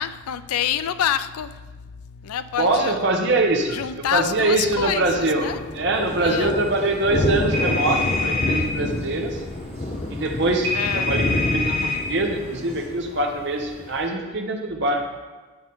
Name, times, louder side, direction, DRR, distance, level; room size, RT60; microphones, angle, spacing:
voice 1, 0.0-3.0 3.6-5.6 6.2-6.6 10.7-11.1, left 9 dB, 85° left, 13 dB, 0.4 m, -27 dB
voice 2, 2.6-3.8 4.1-5.5 5.7-9.4 10.1-15.1, right 2 dB, 50° right, 3 dB, 1.0 m, -23 dB
Thunder, 4.1-14.1, left 2 dB, 30° left, 0.5 m, -29 dB
sound 1, 5.9-12.9, right 1 dB, 30° right, 1.2 m, -45 dB
sound 2, 7.5-8.6 10.6-12.0, left 3 dB, 70° right, 1.9 m, -25 dB
9.8 x 7.0 x 3.6 m, 1.3 s
head